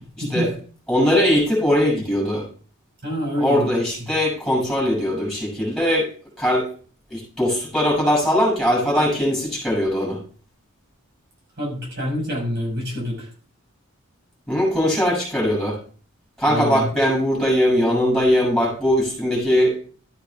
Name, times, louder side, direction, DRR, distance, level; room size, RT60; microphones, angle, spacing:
voice 1, 0.9-2.4 3.4-6.1 6.4-6.7 7.1-10.2 14.5-15.8 16.4-19.8, equal, ahead, -3 dB, 7.0 m, -20 dB
voice 2, 3.0-3.7 4.0-4.1 11.6-13.3 16.5-16.9, equal, 50° right, -2 dB, 5.7 m, -26 dB
13.5 x 8.8 x 3.6 m, 0.40 s
head